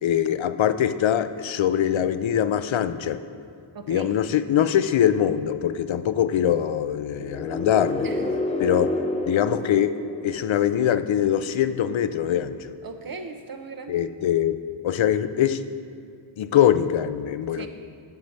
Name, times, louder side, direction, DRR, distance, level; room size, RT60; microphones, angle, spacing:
voice 1, 0.0-3.2 3.9-8.1 8.6-8.9 9.3-10.0 10.2-12.7 13.9-14.6 14.8-15.6 16.4-17.7, left 10 dB, 70° left, 12 dB, 0.5 m, -23 dB
voice 2, 3.7-4.2 8.0-8.3 12.8-14.0 17.5-17.7, right 4 dB, 45° right, 6 dB, 0.8 m, -38 dB
sound 1, 7.2-11.0, left 2 dB, 15° left, 0.5 m, -29 dB
10.5 x 5.8 x 5.2 m, 2.5 s
wide cardioid pair, 85°, 49 cm